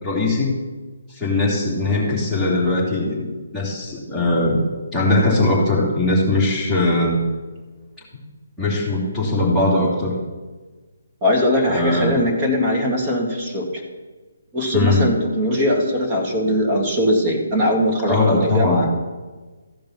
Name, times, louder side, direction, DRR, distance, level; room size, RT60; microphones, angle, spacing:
voice 1, 0.0-0.5 1.1-4.6 4.9-7.2 8.6-10.2 11.7-12.2 14.7-15.0 18.1-18.8, left 2 dB, ahead, -9 dB, 3.1 m, -20 dB
voice 2, 11.2-13.8 14.5-18.9, left 1 dB, 20° right, -1 dB, 2.1 m, -20 dB
14.5 x 5.3 x 5.6 m, 1.3 s
figure-of-eight pair, 140°, 0 cm